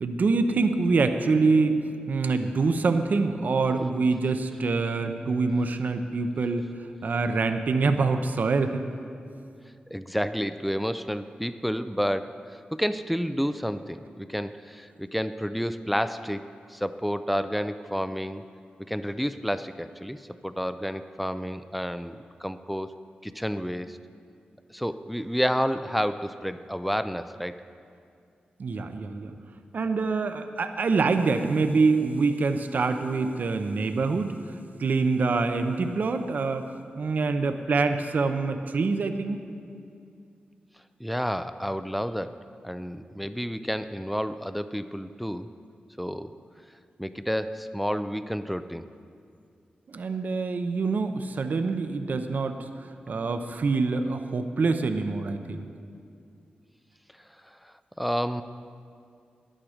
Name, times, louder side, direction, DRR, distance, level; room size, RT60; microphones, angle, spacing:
voice 1, 0.0-1.8 2.1-6.7 7.0-8.8 28.6-29.3 29.7-34.4 34.8-36.7 37.0-39.4 49.9-52.6 53.1-55.7, right 4 dB, 60° right, 8 dB, 0.6 m, -25 dB
voice 2, 9.9-18.4 18.9-22.9 23.2-24.0 24.7-27.6 41.0-42.4 42.6-45.5 46.0-46.3 47.0-48.9 57.4-58.4, equal, ahead, 11 dB, 0.3 m, -30 dB
10.5 x 8.7 x 5.0 m, 2.4 s
wide cardioid pair, 85°, 3 cm